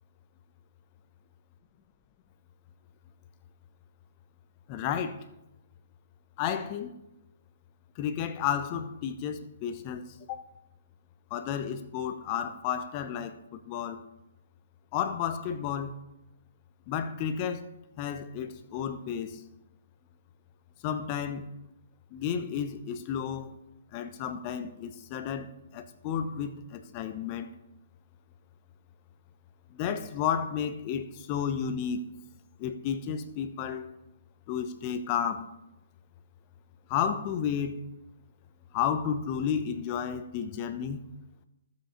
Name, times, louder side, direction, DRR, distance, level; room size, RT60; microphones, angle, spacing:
voice 1, 4.7-5.2 6.4-6.9 8.0-10.4 11.3-14.0 14.9-15.9 16.9-17.6 18.0-19.4 20.8-21.5 22.1-23.5 23.9-27.5 29.7-32.0 32.6-33.9 34.5-35.5 36.9-37.8 38.7-41.1, left 8 dB, 35° left, 0.8 m, -32 dB
13.0 x 7.4 x 3.9 m
figure-of-eight pair, 130°, 0 cm